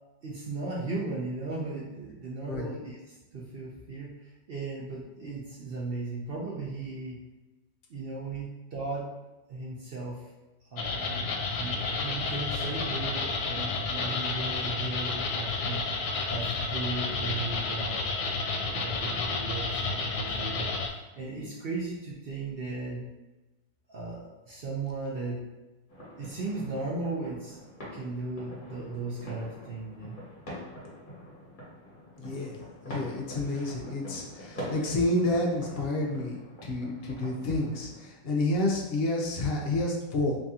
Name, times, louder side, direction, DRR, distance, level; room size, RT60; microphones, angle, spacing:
voice 1, 0.2-7.2 7.9-9.1 9.5-10.2 10.6-15.9 16.3-18.0 18.6-23.1 23.9-25.4 26.2-30.2, right 3 dB, 85° right, -4 dB, 0.5 m, -36 dB
sound 1, 10.8-20.9, left 4 dB, 80° left, 1.1 m, -31 dB
sound 2, 25.9-38.1, equal, 30° left, 1.2 m, -44 dB
voice 2, 32.2-32.6 32.9-40.4, left 2 dB, 60° left, -1 dB, 0.6 m, -29 dB
3.2 x 2.7 x 3.6 m, 1.1 s
omnidirectional pair, 1.8 m